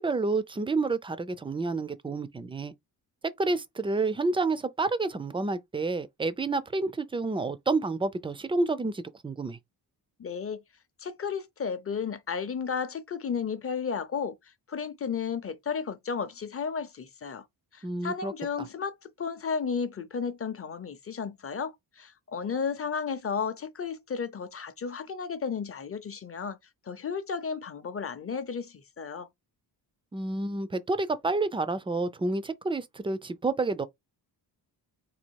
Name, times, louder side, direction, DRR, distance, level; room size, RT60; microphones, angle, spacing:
voice 1, 0.0-2.7 3.4-9.6 17.8-18.3 30.1-33.8, right 3 dB, 15° right, 0.4 m, -29 dB
voice 2, 10.2-10.6 11.0-14.3 14.7-17.4 17.7-26.6 26.9-29.3, left 6 dB, 35° left, 0.6 m, -33 dB
4.1 x 2.6 x 4.5 m
wide cardioid pair, 150°, 42 cm